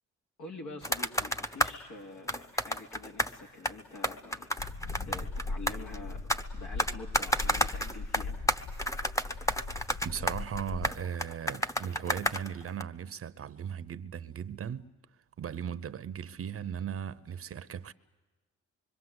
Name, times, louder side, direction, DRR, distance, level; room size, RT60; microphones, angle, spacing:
voice 1, 0.4-4.5 5.1-8.4, left 2 dB, 75° left, 3.1 m, -46 dB
sound 1, 0.8-1.8 2.3-3.4 3.6-6.4 6.8-12.8, equal, 10° left, 1.0 m, -31 dB
sound 2, 4.6-11.0, left 3 dB, 40° left, 3.0 m, -39 dB
voice 2, 10.0-14.9 15.4-17.9, right 8 dB, 50° right, 0.9 m, -37 dB
25.0 x 24.0 x 8.0 m
cardioid pair, 90°, 30 cm